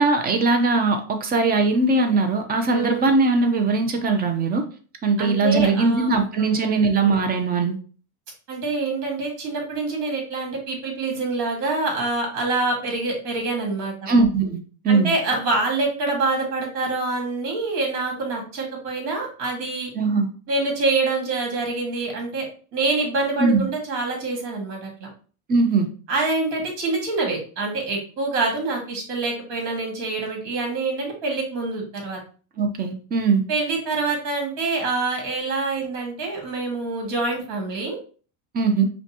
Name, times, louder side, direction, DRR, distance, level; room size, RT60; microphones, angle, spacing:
voice 1, 0.0-4.6 5.0-7.8 14.1-14.6 14.8-15.1 20.0-20.3 23.4-23.7 25.5-25.9 32.6-33.4 38.5-38.8, right 3 dB, 20° right, 5 dB, 0.5 m, -20 dB
voice 2, 2.7-3.1 5.2-6.8 8.5-13.9 14.9-19.9 20.5-22.5 22.7-25.1 26.1-32.2 33.5-38.0, right 3 dB, 60° right, 0 dB, 2.0 m, -26 dB
5.2 x 2.3 x 2.8 m, 0.40 s
supercardioid pair, 135°, 46 cm